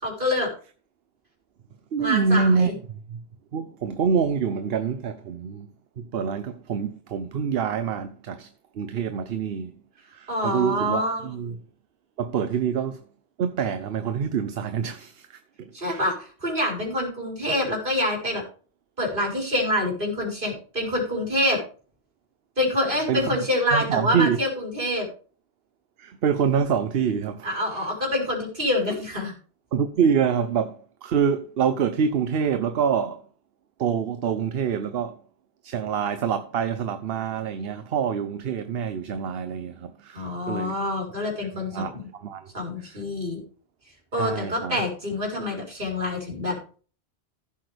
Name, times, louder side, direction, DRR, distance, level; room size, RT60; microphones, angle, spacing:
voice 1, 0.0-0.5 2.0-2.7 10.3-11.2 15.7-18.4 19.0-21.6 22.6-25.1 27.4-29.3 40.1-42.1 42.5-43.4 44.1-46.6, left 1 dB, 50° right, 4.6 m, -26 dB
voice 2, 1.9-2.7 3.1-3.2 3.5-5.7 6.0-8.5 8.7-9.7 10.1-11.6 12.2-13.0 13.4-16.0 23.1-23.4 23.7-24.4 26.0-27.9 29.7-33.2 33.8-35.2 35.6-40.8 41.5-42.5 42.8-43.0 44.2-44.8, right 6 dB, 65° right, 0.9 m, -26 dB
15.0 x 7.9 x 3.4 m
omnidirectional pair, 1.1 m